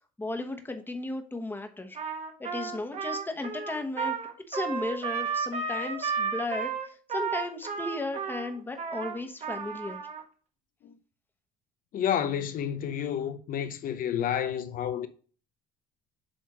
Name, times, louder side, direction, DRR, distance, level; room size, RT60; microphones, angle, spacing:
voice 1, 0.2-2.0 2.4-4.2 4.5-10.0, left 2 dB, 10° left, 1.2 m, -35 dB
Trumpet, 1.9-10.2, right 6 dB, 40° right, 1.4 m, -33 dB
voice 2, 11.9-15.1, left 9 dB, 55° left, 0.8 m, -30 dB
7.3 x 3.6 x 5.0 m
supercardioid pair, 80°, 17 cm